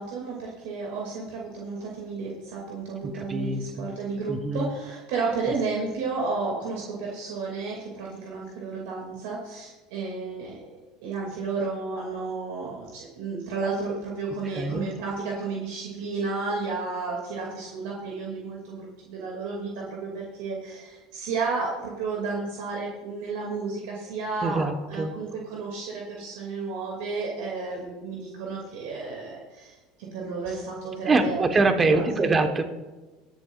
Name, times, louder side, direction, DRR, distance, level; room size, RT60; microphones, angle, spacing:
voice 1, 0.0-10.6 11.0-31.5 31.9-32.3, right 4 dB, 70° right, -3 dB, 2.5 m, -32 dB
voice 2, 3.0-3.9 4.3-4.7 14.5-14.8 24.4-25.1 31.1-32.6, right 3 dB, 25° right, 7 dB, 1.3 m, -24 dB
22.5 x 7.6 x 2.5 m, 1.2 s
hypercardioid pair, 85°, 0 cm